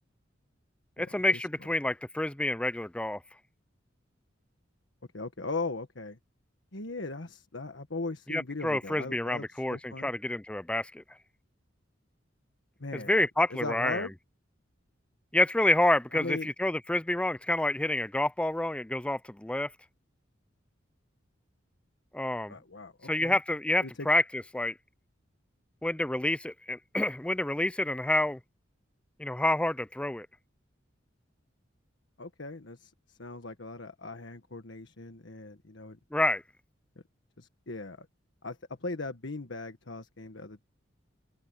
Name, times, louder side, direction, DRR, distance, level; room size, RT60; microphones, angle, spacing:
voice 1, 1.0-3.2 8.3-11.0 13.1-14.0 15.3-19.7 22.1-22.5 23.0-24.7 25.8-28.4 29.2-30.3 36.1-36.4, left 1 dB, 5° left, 0.4 m, -28 dB
voice 2, 5.1-6.2 6.7-10.1 12.8-14.1 16.1-16.5 22.5-23.4 23.8-24.1 32.2-36.0 37.4-38.1 38.4-40.6, left 3 dB, 70° left, 1.5 m, -39 dB
open air
head